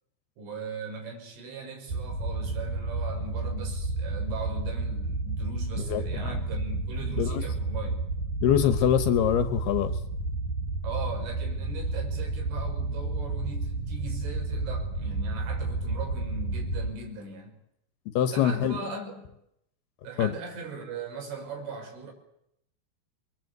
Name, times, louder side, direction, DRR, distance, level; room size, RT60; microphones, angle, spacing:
voice 1, 0.4-8.1 10.8-17.6 18.3-19.4 20.0-22.1, right 4 dB, 85° right, 4 dB, 8.1 m, -39 dB
sound 1, 1.9-16.9, right 2 dB, 40° right, 6.2 m, -31 dB
voice 2, 5.8-6.3 7.2-7.4 8.4-9.9 18.2-18.8 20.2-20.3, left 10 dB, 70° left, 11 dB, 2.7 m, -24 dB
28.5 x 22.0 x 8.1 m, 0.76 s
omnidirectional pair, 5.5 m